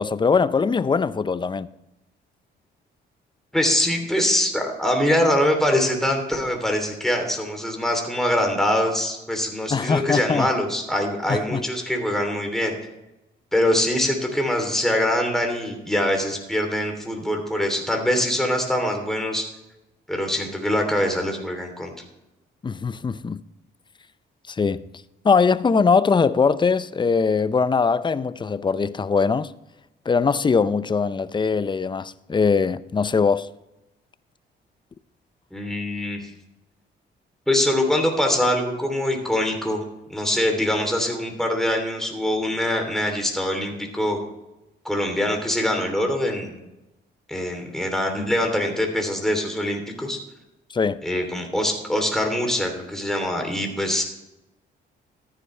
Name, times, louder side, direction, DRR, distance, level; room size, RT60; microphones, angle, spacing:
voice 1, 0.0-1.7 9.7-10.5 11.3-11.6 22.6-23.4 24.5-24.9 25.2-29.5 30.1-33.5 50.7-51.0, left 5 dB, 25° left, 0.5 m, -21 dB
voice 2, 3.5-12.7 13.5-19.5 20.1-21.9 35.5-36.2 37.5-39.8 40.1-44.2 44.8-46.6 47.3-50.2 51.0-54.0, left 1 dB, ahead, 3.0 m, -23 dB
14.0 x 9.9 x 3.3 m
cardioid pair, 90°, 20 cm